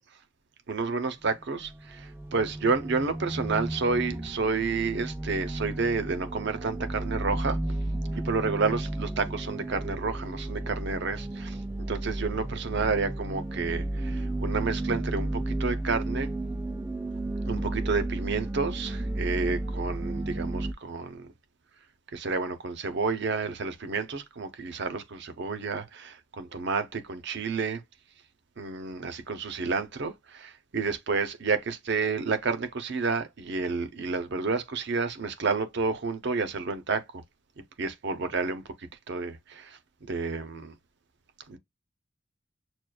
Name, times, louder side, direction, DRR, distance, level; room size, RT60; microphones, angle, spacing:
voice 1, 0.7-7.6 8.1-11.6 11.9-16.3 17.5-21.3 22.1-27.8 28.6-37.1 37.8-38.6 39.1-40.7 41.5-41.6, right 4 dB, 60° right, 0.7 m, -30 dB
sound 1, 1.2-20.7, right 1 dB, 10° right, 0.3 m, -33 dB
6.2 x 2.4 x 2.2 m
head